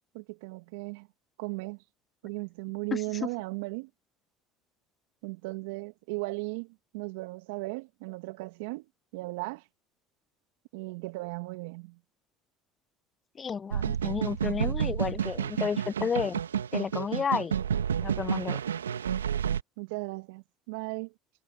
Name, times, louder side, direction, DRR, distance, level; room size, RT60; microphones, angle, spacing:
voice 1, 0.1-1.1 1.4-1.8 2.2-3.9 5.2-8.9 9.1-9.6 10.7-12.0 19.8-21.1, right 27 dB, 70° right, 1.7 m, -36 dB
voice 2, 2.9-3.3 13.4-16.4 16.7-17.5 18.0-18.6, left 6 dB, 30° left, 0.8 m, -31 dB
sound 1, 13.7-19.6, right 8 dB, 90° right, 1.1 m, -30 dB
hypercardioid pair, 70°, 0 cm